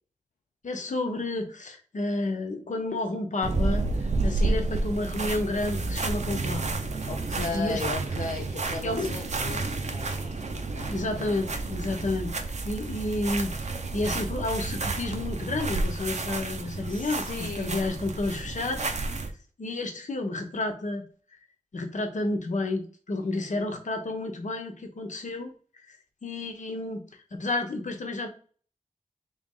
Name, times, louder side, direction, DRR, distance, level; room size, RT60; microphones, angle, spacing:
voice 1, 0.6-3.8 4.2-6.7 7.5-7.8 8.8-9.1 10.9-12.3 12.6-13.5 13.9-18.9 19.6-21.0 21.7-25.5 25.9-26.0 26.2-27.0 27.3-28.3, left 2 dB, 65° left, 4 dB, 1.0 m, -30 dB
sound 1, 3.4-19.3, right 3 dB, 55° right, 0.7 m, -30 dB
voice 2, 4.2-4.6 7.0-11.1 16.9-17.8 23.2-23.7, left 4 dB, 85° left, -1 dB, 0.7 m, -37 dB
3.5 x 3.1 x 3.7 m, 0.41 s
cardioid pair, 60°, 14 cm